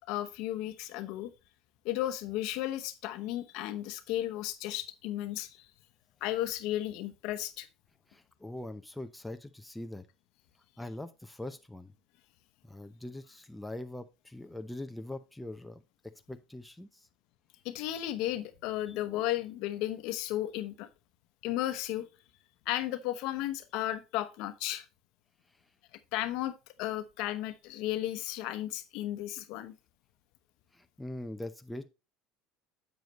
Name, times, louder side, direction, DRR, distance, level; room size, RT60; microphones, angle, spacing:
voice 1, 0.1-1.3 1.8-5.6 6.2-7.7 17.6-20.9 21.4-22.1 22.7-24.8 26.1-26.5 26.8-29.7, left 14 dB, 70° left, 11 dB, 0.9 m, -34 dB
voice 2, 8.1-10.1 10.8-11.9 12.6-17.1 18.9-19.0 25.5-25.6 30.7-31.9, left 1 dB, 5° left, 7 dB, 0.7 m, -42 dB
8.0 x 6.8 x 3.0 m, 0.27 s
supercardioid pair, 105°, 0 cm